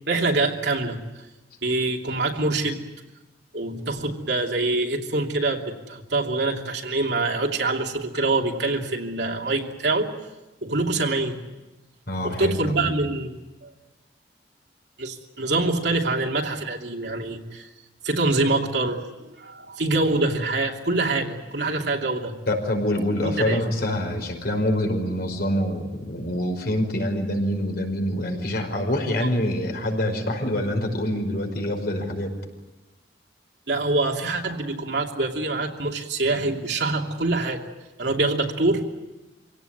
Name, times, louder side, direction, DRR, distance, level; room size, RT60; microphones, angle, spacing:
voice 1, 0.1-1.0 1.6-2.8 3.5-10.1 10.6-11.4 12.2-13.7 15.0-17.7 18.0-22.3 23.2-23.6 33.7-37.6 38.0-38.8, right 2 dB, 75° right, 1 dB, 2.9 m, -25 dB
voice 2, 12.1-13.0 22.5-32.4, left 1 dB, 60° left, 3 dB, 5.2 m, -26 dB
26.0 x 17.5 x 9.5 m, 1.1 s
head